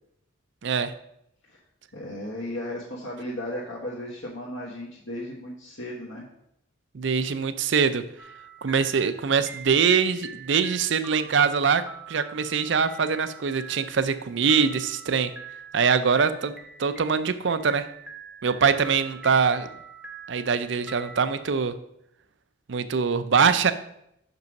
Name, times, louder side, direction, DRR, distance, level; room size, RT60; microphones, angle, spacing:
voice 1, 0.6-0.9 6.9-8.0 8.6-15.3 15.7-16.5 16.8-17.9 18.4-19.7 20.3-21.7 22.7-23.7, right 6 dB, 60° right, 12 dB, 0.5 m, -23 dB
voice 2, 1.9-6.3, left 1 dB, 65° left, -6 dB, 1.4 m, -35 dB
sound 1, 8.2-21.4, right 4 dB, 5° right, 0.8 m, -45 dB
6.1 x 5.4 x 5.2 m, 0.77 s
head